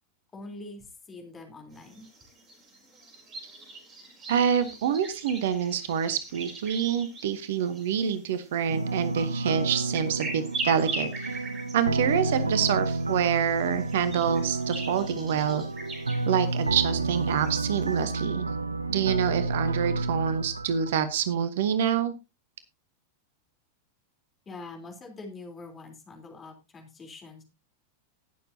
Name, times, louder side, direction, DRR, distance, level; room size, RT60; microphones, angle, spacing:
voice 1, 0.3-2.0 24.5-27.4, left 2 dB, 20° left, 3 dB, 3.5 m, -44 dB
sound 1, 1.7-18.2, right 2 dB, 30° right, 5.3 m, -42 dB
voice 2, 4.3-11.3 11.7-15.6 16.3-18.5 18.9-22.1, right 8 dB, 55° right, 13 dB, 1.0 m, -27 dB
sound 2, 8.7-21.3, right 3 dB, 80° right, 0.5 m, -30 dB
19.0 x 6.9 x 2.7 m, 0.25 s
figure-of-eight pair, 90°, 0 cm